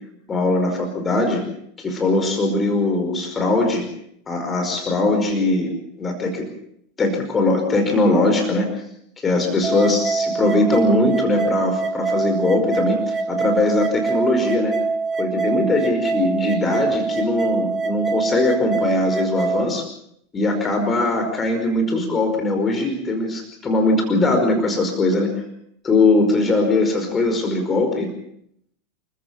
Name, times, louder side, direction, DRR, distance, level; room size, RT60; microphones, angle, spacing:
voice 1, 0.3-1.4 1.8-3.9 4.3-6.5 7.0-8.7 9.2-14.7 15.2-19.8 20.3-25.3 25.8-28.1, left 2 dB, 25° left, 5 dB, 5.1 m, -20 dB
sound 1, 9.6-19.6, right 4 dB, 25° right, 2.7 m, -24 dB
28.0 x 15.0 x 7.4 m, 0.73 s
hypercardioid pair, 90°, 0 cm